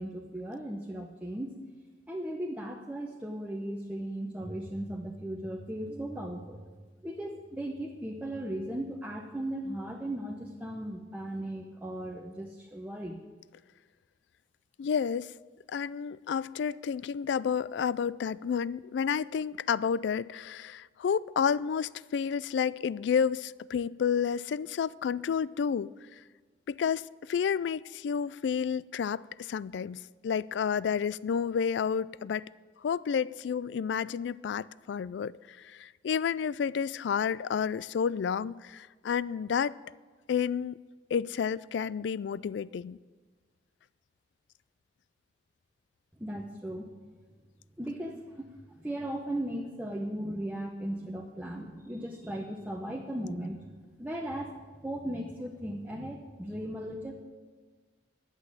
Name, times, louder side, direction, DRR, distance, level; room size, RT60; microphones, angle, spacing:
voice 1, 0.0-1.6 2.1-6.7 7.0-13.2 46.2-46.9 47.8-54.5 54.8-57.1, right 1 dB, 10° right, 0.8 m, -37 dB
voice 2, 14.8-15.3 15.7-25.9 26.7-32.4 32.8-39.8 40.3-40.8 41.1-43.0, left 7 dB, 75° left, 0.3 m, -30 dB
11.0 x 8.1 x 8.4 m
head